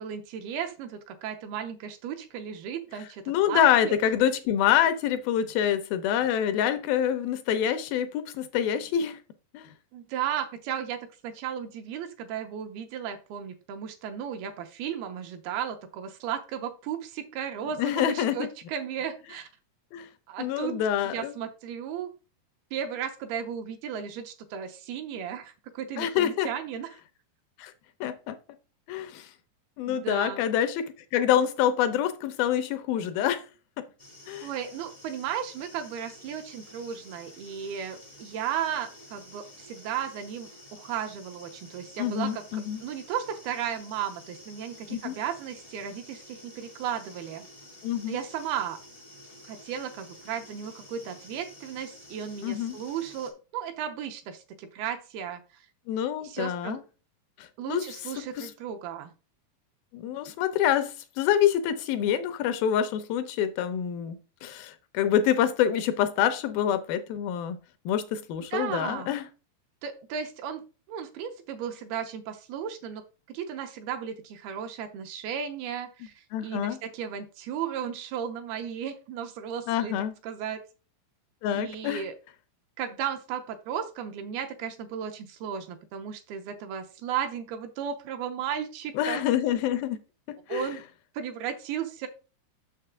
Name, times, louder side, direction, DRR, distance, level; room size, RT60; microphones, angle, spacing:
voice 1, 0.0-4.0 9.9-19.5 20.3-20.8 21.1-22.1 22.7-26.9 29.9-30.4 34.4-47.5 48.1-48.8 49.4-55.4 56.2-56.8 57.6-59.1 68.5-69.1 69.8-70.6 70.9-79.9 80.2-80.6 81.5-82.2 82.8-89.3 90.5-90.8 91.1-92.1, right 8 dB, 80° right, 2.6 m, -35 dB
voice 2, 3.3-9.2 9.5-9.7 17.8-18.5 19.9-20.1 20.4-21.3 26.0-26.5 27.6-27.7 28.0-28.4 28.9-29.3 29.8-30.9 31.1-33.4 34.3-34.5 42.0-42.8 44.9-45.2 47.8-48.2 52.4-52.8 55.9-56.8 57.4-57.8 58.4-58.5 59.9-67.6 67.9-69.3 76.3-76.8 79.7-80.1 81.4-82.0 89.0-90.0 90.3-90.7, left 10 dB, 80° left, 2.2 m, -26 dB
sound 1, 34.0-53.3, left 1 dB, 35° left, 0.5 m, -50 dB
6.7 x 6.6 x 3.6 m
omnidirectional pair, 4.6 m